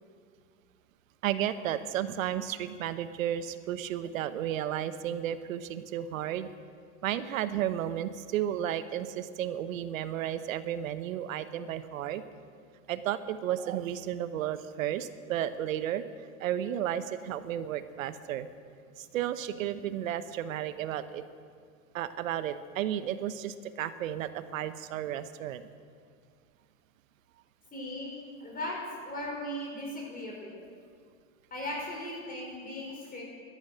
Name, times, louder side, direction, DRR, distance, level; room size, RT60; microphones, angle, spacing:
voice 1, 1.2-6.5 7.0-12.2 12.9-16.0 16.4-18.5 19.0-21.2 21.9-25.6, right 11 dB, 85° right, 12 dB, 1.0 m, -33 dB
voice 2, 27.7-28.1 28.4-28.8 29.0-30.6 31.5-33.2, left 1 dB, 20° left, -2 dB, 5.1 m, -37 dB
13.0 x 12.0 x 8.9 m, 2.1 s
hypercardioid pair, 105°, 39 cm